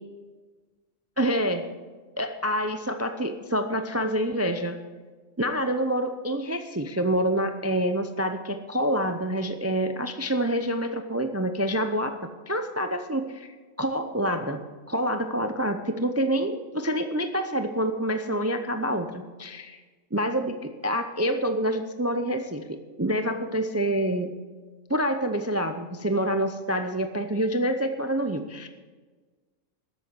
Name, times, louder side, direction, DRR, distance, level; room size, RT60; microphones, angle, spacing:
voice 1, 1.2-1.7 2.2-4.8 5.4-12.2 12.5-13.5 13.8-14.6 14.9-19.8 20.1-22.6 23.0-24.3 24.9-28.7, equal, 15° right, 7 dB, 0.5 m, -27 dB
12.5 x 8.3 x 8.1 m, 1.4 s
omnidirectional pair, 1.4 m